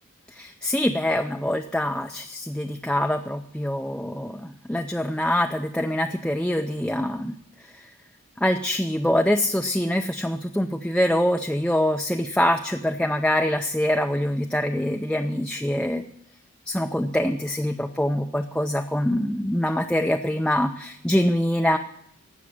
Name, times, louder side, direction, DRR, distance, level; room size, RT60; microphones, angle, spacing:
voice 1, 0.3-7.3 7.6-7.8 8.4-16.0 16.7-21.8, left 1 dB, 5° left, 4 dB, 0.4 m, -24 dB
16.0 x 6.3 x 9.7 m, 0.73 s
head